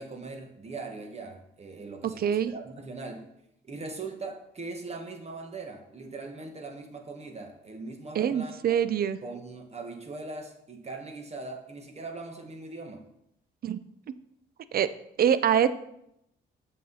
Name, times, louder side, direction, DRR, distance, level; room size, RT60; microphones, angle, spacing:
voice 1, 0.0-3.2 3.6-8.8 9.2-13.0, right 3 dB, 30° right, 4 dB, 1.3 m, -40 dB
voice 2, 2.2-2.5 8.1-9.2 13.6-13.8 14.7-14.9 15.2-15.7, right 9 dB, 50° right, 14 dB, 0.5 m, -24 dB
7.5 x 5.7 x 4.1 m, 0.79 s
cardioid pair, 90°, 20 cm